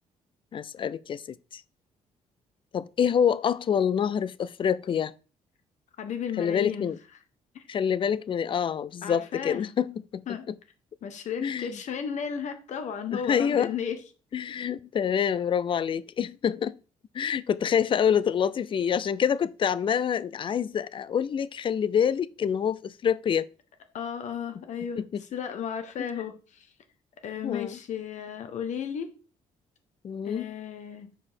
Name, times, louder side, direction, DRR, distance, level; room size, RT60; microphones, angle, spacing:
voice 1, 0.5-1.6 2.7-5.1 6.4-7.0 7.7-10.5 11.4-11.8 13.1-13.7 14.3-16.8 17.1-23.5 25.0-25.2 26.0-26.2 27.4-27.8 30.0-30.5, left 8 dB, 40° left, 0.4 m, -27 dB
voice 2, 6.0-6.9 7.5-7.6 9.0-9.7 10.3-10.5 11.0-14.0 23.9-25.0 25.3-26.7 27.2-29.1 30.2-31.1, left 8 dB, 65° left, 1.4 m, -34 dB
6.6 x 4.9 x 4.3 m
cardioid pair, 105°, 13 cm